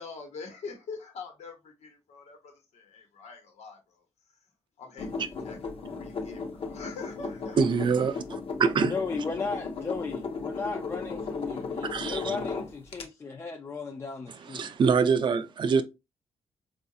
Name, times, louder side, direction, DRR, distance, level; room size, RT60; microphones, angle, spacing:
voice 1, 0.0-4.0 4.8-7.6, left 4 dB, 80° left, 1.1 m, -44 dB
sound 1, 5.0-13.0, left 4 dB, 55° left, 0.7 m, -36 dB
voice 2, 7.6-8.9 11.9-12.4 14.5-15.8, right 5 dB, 45° right, 0.4 m, -25 dB
voice 3, 8.8-14.7, left 4 dB, 25° left, 0.3 m, -35 dB
4.6 x 2.4 x 2.7 m
wide cardioid pair, 150°, 11 cm